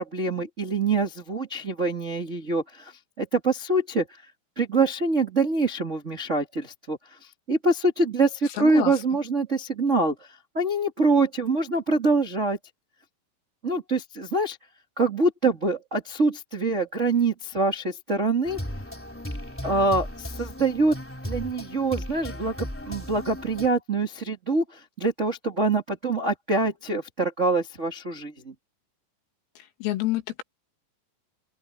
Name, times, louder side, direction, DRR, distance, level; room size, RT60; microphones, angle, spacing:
voice 1, 0.0-2.9 3.2-4.0 4.5-7.0 7.5-10.1 10.5-12.6 13.6-14.6 15.0-18.6 19.6-21.0 21.2-28.5, right 3 dB, 50° right, 0.8 m, -25 dB
voice 2, 8.6-8.9 29.6-30.4, left 15 dB, 85° left, 5.0 m, -28 dB
sound 1, 18.4-23.7, equal, 5° left, 2.0 m, -36 dB
open air
omnidirectional pair, 5.9 m